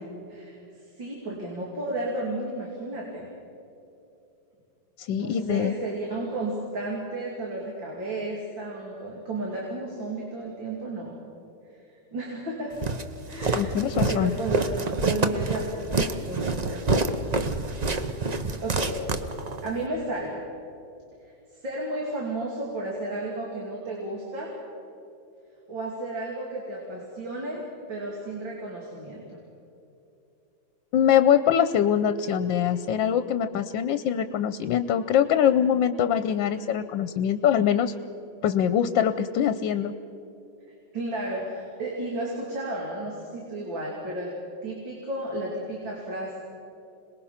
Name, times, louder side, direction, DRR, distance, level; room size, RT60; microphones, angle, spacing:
voice 1, 0.3-3.3 5.1-11.2 12.1-12.7 13.3-14.7 15.0-17.2 18.3-19.0 19.6-20.4 21.2-24.5 25.7-27.6 27.9-29.4 40.9-44.3 44.6-46.4, right 2 dB, 85° right, -3 dB, 3.6 m, -33 dB
voice 2, 5.0-5.7 13.5-14.3 30.9-37.9 38.4-39.9, left 9 dB, 85° left, 11 dB, 1.4 m, -23 dB
Walk footsteps, 12.8-19.7, right 3 dB, 40° right, 0.6 m, -27 dB
27.0 x 20.0 x 5.8 m, 2.8 s
omnidirectional pair, 2.0 m